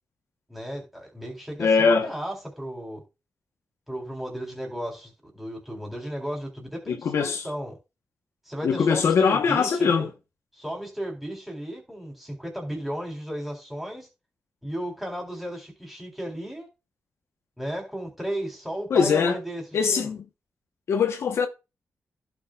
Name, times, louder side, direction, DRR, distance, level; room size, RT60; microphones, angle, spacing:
voice 1, 0.5-3.0 3.9-7.7 8.5-10.1 10.5-14.1 14.6-16.7 17.6-19.6 19.9-20.1, equal, 5° right, 3.8 m, -34 dB
voice 2, 1.6-2.1 6.9-7.5 8.6-10.1 18.9-19.4 19.7-20.2 20.9-21.5, left 5 dB, 70° left, 1.1 m, -22 dB
15.5 x 6.4 x 2.4 m
wide cardioid pair, 175°, 5 cm